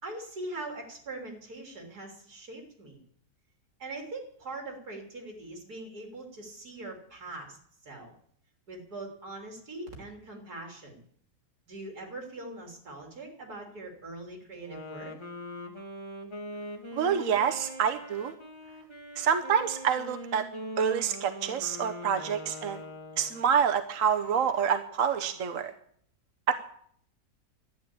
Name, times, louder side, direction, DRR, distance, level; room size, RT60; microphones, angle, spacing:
voice 1, 0.0-3.0 3.8-7.6 7.8-8.1 8.7-11.0 11.7-15.1, right 2 dB, 85° right, 2 dB, 3.8 m, -42 dB
Wind instrument woodwind instrument, 14.6-23.5, equal, 20° left, 2.0 m, -42 dB
voice 2, 17.0-18.3 19.2-20.4 20.8-22.8 23.2-25.7 26.5-26.6, right 7 dB, 60° right, 6 dB, 1.2 m, -27 dB
12.0 x 11.0 x 8.6 m, 0.63 s
omnidirectional pair, 1.6 m